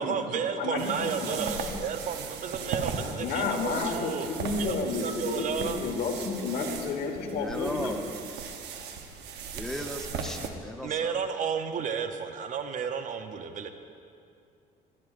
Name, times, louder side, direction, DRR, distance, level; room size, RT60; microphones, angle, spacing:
voice 1, 0.0-4.3 4.6-5.8 10.8-13.7, right 7 dB, 50° right, 8 dB, 0.7 m, -32 dB
voice 2, 0.6-1.8 3.2-8.0, left 4 dB, 65° left, 3 dB, 1.4 m, -31 dB
sound 1, 0.8-10.5, right 6 dB, 85° right, 0.9 m, -38 dB
voice 3, 7.3-8.0 9.5-11.2, left 1 dB, 5° left, 3 dB, 0.8 m, -36 dB
18.0 x 11.5 x 2.5 m, 2.5 s
cardioid pair, 110°, 17 cm